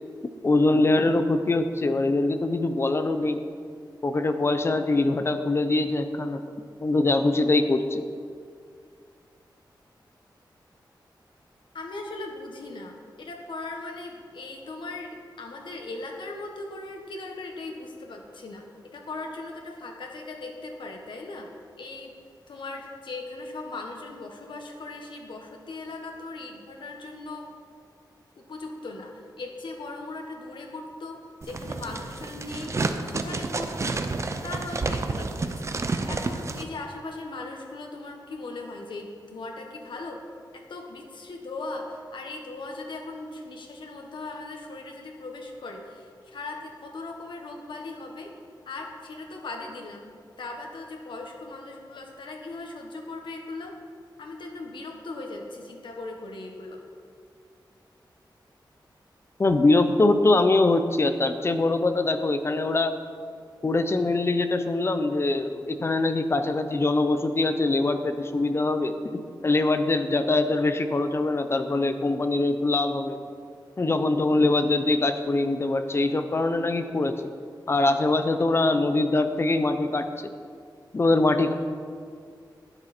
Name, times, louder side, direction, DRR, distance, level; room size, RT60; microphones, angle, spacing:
voice 1, 0.4-3.4 4.0-6.4 6.8-8.0 59.4-62.9 63.6-73.2 73.8-77.3 77.7-80.3 80.9-81.5, left 2 dB, 35° left, 8 dB, 0.7 m, -23 dB
voice 2, 11.7-22.1 22.5-27.5 28.3-32.8 33.0-34.0 34.4-35.8 36.1-40.2 40.5-48.3 48.6-53.8 54.2-56.8, left 2 dB, 85° left, 2 dB, 1.6 m, -39 dB
sound 1, 31.4-36.6, right 3 dB, 40° right, 0.6 m, -30 dB
12.0 x 10.5 x 4.4 m, 2.2 s
wide cardioid pair, 155°, 8 cm